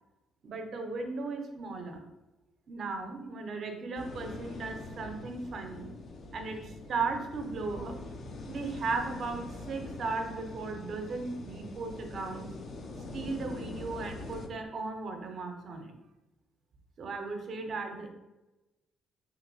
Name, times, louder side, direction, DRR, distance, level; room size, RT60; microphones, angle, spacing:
voice 1, 0.4-2.0 2.7-5.9 6.3-7.9 8.5-12.5 13.1-15.9 17.0-18.1, right 3 dB, 55° right, 4 dB, 0.5 m, -36 dB
sound 1, 4.0-14.5, left 2 dB, 55° left, 0.4 m, -44 dB
2.9 x 2.9 x 2.6 m, 1.0 s
hypercardioid pair, 45°, 0 cm